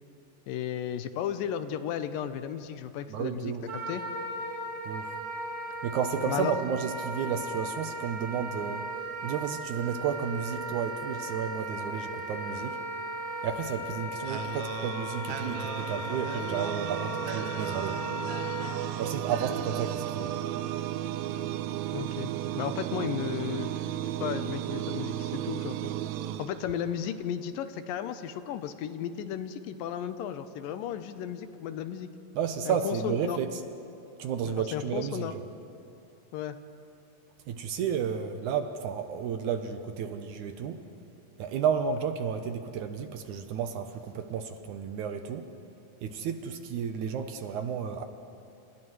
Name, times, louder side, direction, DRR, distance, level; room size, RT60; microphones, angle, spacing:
voice 1, 0.5-4.0 6.3-6.5 21.9-23.9 24.2-25.8 26.4-32.1 32.7-33.4 34.5-35.3 36.3-36.6, left 9 dB, 85° left, 10 dB, 2.4 m, -34 dB
voice 2, 3.1-3.6 4.8-5.1 5.8-8.9 9.2-12.8 13.4-18.0 19.0-20.3 32.4-33.5 34.2-35.4 37.5-40.8 41.4-45.5 46.0-48.1, right 7 dB, 75° right, 7 dB, 2.0 m, -32 dB
Wind instrument woodwind instrument, 3.7-18.7, right 1 dB, 60° right, 8.2 m, -37 dB
sound 1, 14.3-27.2, right 12 dB, 90° right, 1.6 m, -34 dB
29.0 x 28.5 x 3.2 m, 2.7 s
omnidirectional pair, 4.0 m